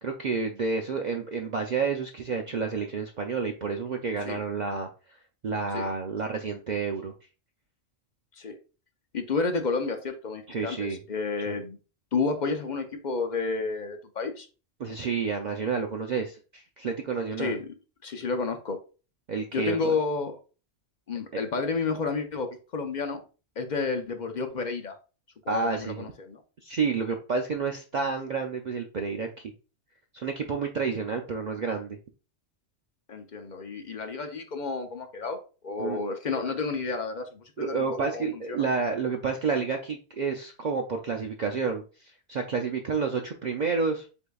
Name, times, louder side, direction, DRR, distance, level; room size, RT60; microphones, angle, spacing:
voice 1, 0.0-4.9 5.4-7.1 10.5-11.0 11.5-11.6 14.8-17.6 19.3-20.0 21.3-21.4 25.5-26.1 26.6-29.5 30.1-32.0 35.8-36.0 36.3-36.4 37.6-44.1, right 5 dB, 55° right, 0.5 m, -30 dB
voice 2, 9.1-11.8 12.1-14.5 17.4-17.7 18.0-18.8 19.5-20.3 21.1-23.2 23.6-25.0 25.4-26.4 33.1-38.7, left 4 dB, 45° left, 0.7 m, -31 dB
8.0 x 2.7 x 2.3 m
omnidirectional pair, 1.2 m